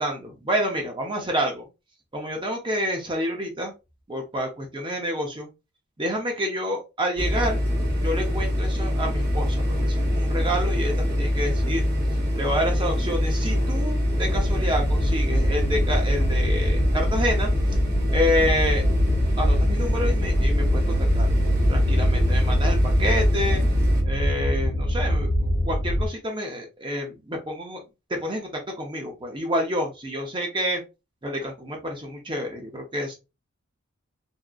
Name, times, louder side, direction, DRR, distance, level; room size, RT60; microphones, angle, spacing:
voice 1, 0.0-1.7 2.1-3.7 4.1-5.5 6.0-7.6 8.0-11.8 12.3-17.5 18.1-18.8 19.4-21.3 21.7-23.6 24.0-27.8 28.1-30.8 31.2-33.1, equal, 20° right, 2 dB, 0.6 m, -28 dB
sound 1, 7.2-24.0, left 1 dB, 45° right, 1.1 m, -24 dB
sound 2, 14.2-26.1, equal, 55° left, 0.7 m, -24 dB
2.7 x 2.4 x 2.3 m, 0.26 s
head